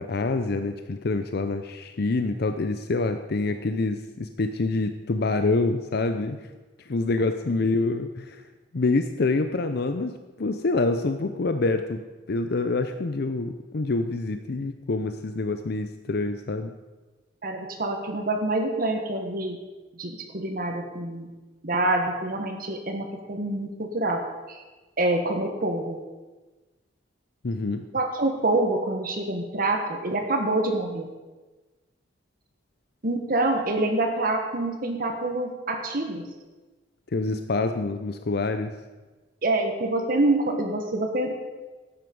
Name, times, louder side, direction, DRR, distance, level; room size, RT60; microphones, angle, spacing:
voice 1, 0.0-6.4 6.8-8.4 8.7-12.0 12.3-16.7 27.4-27.9 37.1-38.8, left 3 dB, 60° left, 8 dB, 0.6 m, -26 dB
voice 2, 17.4-19.6 20.0-21.3 21.6-24.2 24.5-24.6 25.0-26.0 27.9-31.1 33.0-36.2 39.4-41.4, right 2 dB, 55° right, 3 dB, 1.4 m, -26 dB
12.5 x 9.5 x 5.4 m, 1.2 s
head